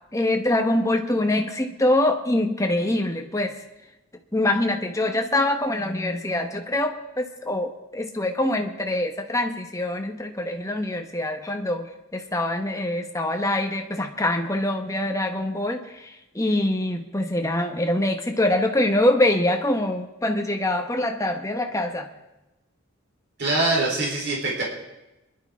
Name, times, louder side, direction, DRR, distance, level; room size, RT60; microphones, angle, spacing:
voice 1, 0.1-3.5 4.3-11.9 12.1-22.1, left 1 dB, 15° left, 4 dB, 1.1 m, -24 dB
voice 2, 23.4-24.6, right 2 dB, 50° right, -3 dB, 3.6 m, -23 dB
26.0 x 11.5 x 3.7 m, 0.98 s
head